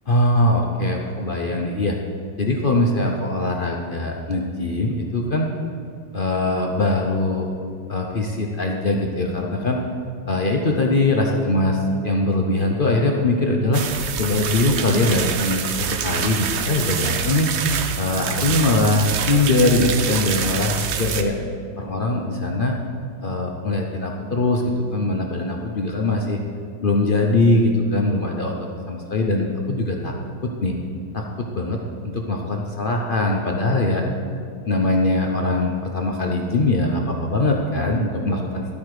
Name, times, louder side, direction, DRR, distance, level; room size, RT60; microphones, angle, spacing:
voice 1, 0.1-2.0 2.4-5.5 6.1-7.5 7.9-9.8 10.3-13.8 14.2-17.5 18.0-21.3 21.8-22.8 23.2-26.4 26.8-28.5 28.9-30.1 30.4-30.7 31.1-34.0 34.7-38.7, left 2 dB, 60° left, 1 dB, 0.5 m, -21 dB
sound 1, 13.7-21.2, right 6 dB, 75° right, 0.6 m, -26 dB
12.0 x 8.5 x 4.8 m, 2.3 s
omnidirectional pair, 2.0 m